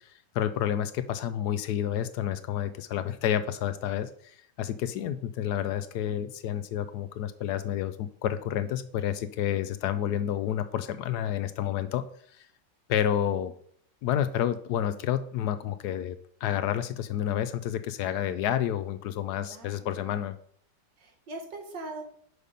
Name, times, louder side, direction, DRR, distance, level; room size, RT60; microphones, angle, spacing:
voice 1, 0.3-12.0 12.4-12.5 12.9-13.5 14.0-16.2 16.4-20.3, left 10 dB, 75° left, 12 dB, 1.1 m, -29 dB
voice 2, 21.0-22.0, right 2 dB, 80° right, 2 dB, 2.0 m, -41 dB
6.5 x 5.0 x 5.4 m, 0.63 s
omnidirectional pair, 1.9 m